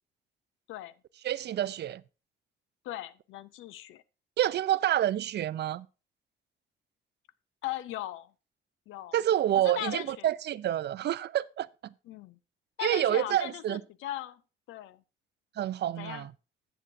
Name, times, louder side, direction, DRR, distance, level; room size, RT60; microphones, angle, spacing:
voice 1, 1.2-2.0 4.4-5.9 9.1-11.9 12.8-13.8 15.6-16.3, right 12 dB, 60° right, 0.5 m, -28 dB
voice 2, 2.8-4.0 7.6-8.3 8.9-9.1 9.6-10.3 12.1-12.4 12.8-14.4 14.7-15.0 16.0-16.3, left 14 dB, 90° left, 0.6 m, -38 dB
13.5 x 8.1 x 2.6 m
cardioid pair, 90°, 20 cm